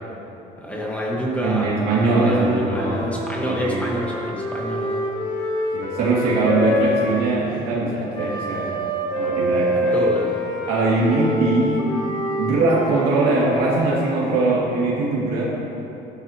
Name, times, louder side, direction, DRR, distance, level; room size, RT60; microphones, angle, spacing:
voice 1, 0.6-1.7 2.0-5.0 9.7-10.4, equal, 10° left, -4 dB, 1.5 m, -26 dB
voice 2, 1.4-3.1 3.4-3.9 5.7-8.7 9.2-9.9 10.7-11.8 12.4-15.5, right 3 dB, 80° right, -6 dB, 2.3 m, -21 dB
Wind instrument woodwind instrument, 1.7-7.4 8.1-14.6, equal, 25° left, 1.7 m, -27 dB
12.5 x 12.0 x 3.0 m, 3.0 s
cardioid pair, 135°, 16 cm